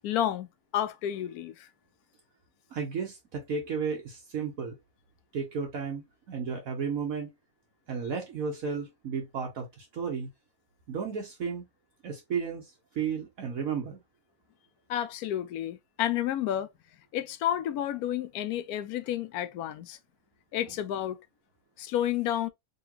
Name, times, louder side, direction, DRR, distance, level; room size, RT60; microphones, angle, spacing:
voice 1, 0.0-0.5 0.7-1.7 14.9-16.7 17.1-20.0 20.5-21.2 21.8-22.5, left 11 dB, 90° left, 1.1 m, -30 dB
voice 2, 2.7-4.8 5.3-6.0 6.3-7.3 7.9-10.3 10.9-11.6 12.0-14.0, right 6 dB, 70° right, 1.3 m, -33 dB
3.9 x 3.2 x 2.8 m
omnidirectional pair, 1.5 m